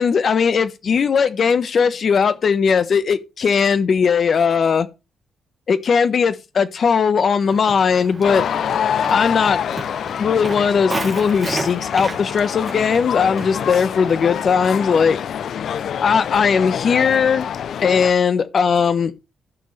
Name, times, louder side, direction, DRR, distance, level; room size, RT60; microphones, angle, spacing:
voice 1, 0.0-4.9 5.7-8.4 9.1-9.6 10.2-15.2 16.0-17.5 17.8-19.1, left 6 dB, 45° left, 1.2 m, -18 dB
Walk footsteps, 7.4-14.8, right 2 dB, 20° right, 3.0 m, -33 dB
sound 1, 8.2-18.1, left 8 dB, 60° left, 0.7 m, -26 dB
15.5 x 6.1 x 3.3 m
cardioid pair, 140°, 0 cm